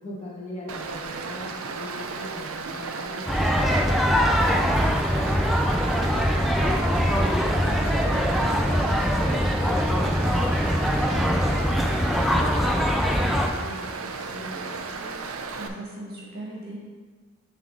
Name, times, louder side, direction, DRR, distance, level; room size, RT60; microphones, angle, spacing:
voice 1, 0.0-6.7 7.1-11.9 12.2-15.3, equal, 30° left, -5 dB, 1.3 m, -40 dB
Stream, 0.7-15.7, right 4 dB, 75° right, 0.5 m, -35 dB
sound 1, 3.3-13.5, equal, ahead, 0.3 m, -22 dB
voice 2, 15.6-16.8, right 1 dB, 45° right, -5 dB, 1.7 m, -37 dB
9.6 x 3.5 x 3.7 m, 1.5 s
head